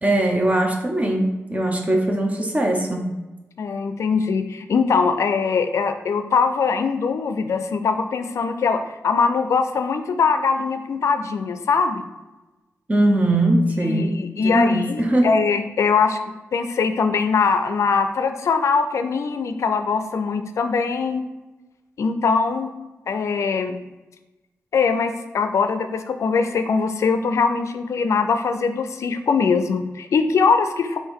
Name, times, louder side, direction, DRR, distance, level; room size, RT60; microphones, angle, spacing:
voice 1, 0.0-3.1 12.9-15.3, right 1 dB, 25° right, 2 dB, 0.8 m, -21 dB
voice 2, 3.6-12.0 13.8-16.2 16.5-21.2 22.0-22.7 23.1-23.8 24.7-31.0, left 5 dB, 70° left, 8 dB, 0.4 m, -21 dB
4.5 x 2.9 x 3.6 m, 1.1 s
cardioid pair, 60°, 5 cm